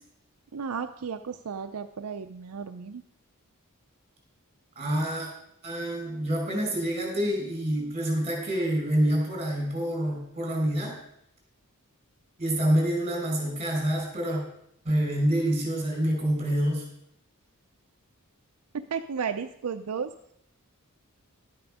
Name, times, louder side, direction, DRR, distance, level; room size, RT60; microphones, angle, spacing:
voice 1, 0.5-3.0 18.7-20.1, right 6 dB, 80° right, 7 dB, 0.5 m, -33 dB
voice 2, 4.8-5.3 5.6-10.9 12.4-14.4 14.8-16.8, right 1 dB, 30° right, 0 dB, 4.6 m, -27 dB
12.0 x 8.7 x 4.8 m, 0.73 s
head